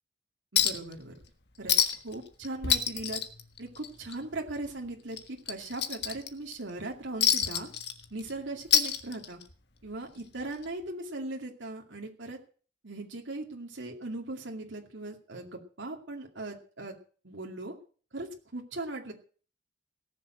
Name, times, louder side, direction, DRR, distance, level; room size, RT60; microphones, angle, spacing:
voice 1, 0.5-1.2 1.6-1.7 2.0-3.2 3.6-7.7 8.1-9.4 9.8-12.4 12.8-17.0 17.2-17.8 18.1-19.1, right 2 dB, 85° right, 1 dB, 2.4 m, -39 dB
Chink clink, 0.6-0.9 1.2-1.3 1.7-2.1 2.4-4.1 4.5-4.7 5.1-6.5 7.2-8.3 8.6-9.5 10.6-10.7, left 9 dB, 60° left, 1.4 m, -27 dB
18.0 x 7.1 x 7.7 m, 0.42 s
head